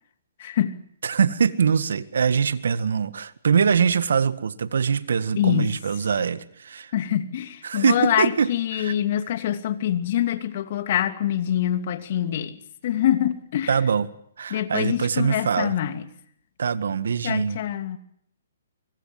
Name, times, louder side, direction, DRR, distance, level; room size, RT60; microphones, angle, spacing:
voice 1, 0.4-0.8 5.4-5.8 6.9-13.8 14.5-16.1 17.2-18.0, left 11 dB, 50° left, 9 dB, 2.7 m, -25 dB
voice 2, 1.0-6.9 7.6-8.9 13.7-14.1 14.4-15.7 16.6-17.6, right 6 dB, 70° right, 14 dB, 1.8 m, -23 dB
24.5 x 23.0 x 7.5 m, 0.70 s
hypercardioid pair, 135°, 0 cm